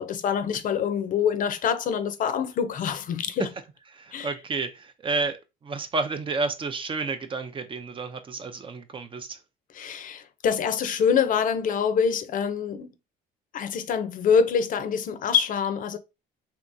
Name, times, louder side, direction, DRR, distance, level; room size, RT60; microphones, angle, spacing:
voice 1, 0.0-3.5 4.1-4.3 9.7-12.9 13.5-16.0, left 7 dB, 50° left, 0.5 m, -25 dB
voice 2, 3.9-9.4, right 3 dB, 30° right, 0.4 m, -31 dB
3.4 x 2.8 x 2.6 m
cardioid pair, 110°, 17 cm